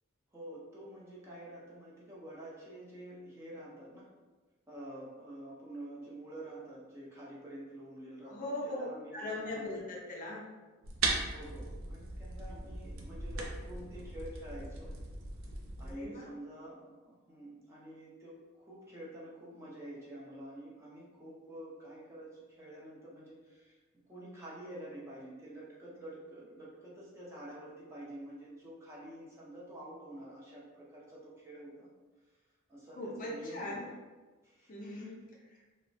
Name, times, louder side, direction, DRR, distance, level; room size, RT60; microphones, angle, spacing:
voice 1, 0.3-4.1 4.7-9.7 11.3-15.0 15.8-23.8 24.1-31.9 32.7-33.9 34.4-34.7, right 1 dB, 15° right, -6 dB, 0.5 m, -48 dB
voice 2, 8.3-8.9 9.1-10.4 15.9-16.3 33.0-33.9 34.7-35.6, left 1 dB, 40° left, -3 dB, 0.5 m, -40 dB
sound 1, 10.8-15.9, right 3 dB, 70° right, 0.4 m, -38 dB
2.9 x 2.0 x 2.6 m, 1.2 s
head